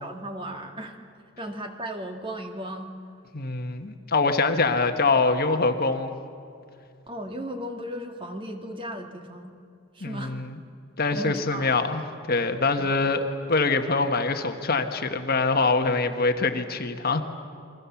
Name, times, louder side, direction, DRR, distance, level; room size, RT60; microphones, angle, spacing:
voice 1, 0.0-1.0 1.4-2.9 7.1-9.5 9.9-10.3 11.1-11.7 12.8-12.9, right 1 dB, 25° right, 4 dB, 2.0 m, -36 dB
voice 2, 3.3-6.1 10.0-10.6 11.0-17.2, left 3 dB, 45° left, 7 dB, 1.4 m, -24 dB
30.0 x 23.0 x 7.2 m, 2.4 s
head